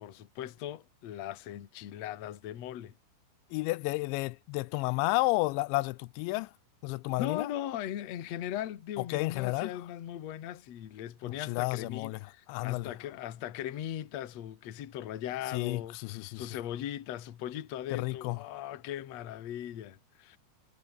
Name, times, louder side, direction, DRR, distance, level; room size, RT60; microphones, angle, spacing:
voice 1, 0.0-2.9 7.2-20.4, left 11 dB, 55° left, 2.0 m, -39 dB
voice 2, 3.5-6.5 6.8-7.5 9.0-9.7 11.2-12.2 12.5-12.9 15.5-16.5 17.9-18.4, left 21 dB, 85° left, 2.9 m, -31 dB
omnidirectional pair, 5.2 m